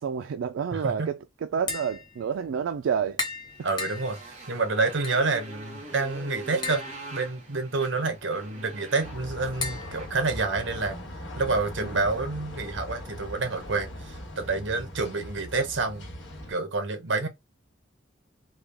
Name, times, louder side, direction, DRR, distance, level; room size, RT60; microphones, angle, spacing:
voice 1, 0.0-3.2 11.8-12.0, right 7 dB, 80° right, 0.3 m, -29 dB
voice 2, 0.7-1.2 3.6-4.2 4.5-6.8 7.1-11.0 11.4-16.1 16.5-17.3, right 3 dB, 65° right, 0.9 m, -28 dB
Tap, 1.5-11.0, left 4 dB, 25° left, 0.7 m, -40 dB
Motorcycle, 3.5-10.9, right 2 dB, 35° right, 1.4 m, -44 dB
sound 1, 9.0-16.5, equal, 75° left, 1.4 m, -40 dB
3.5 x 2.2 x 3.4 m
head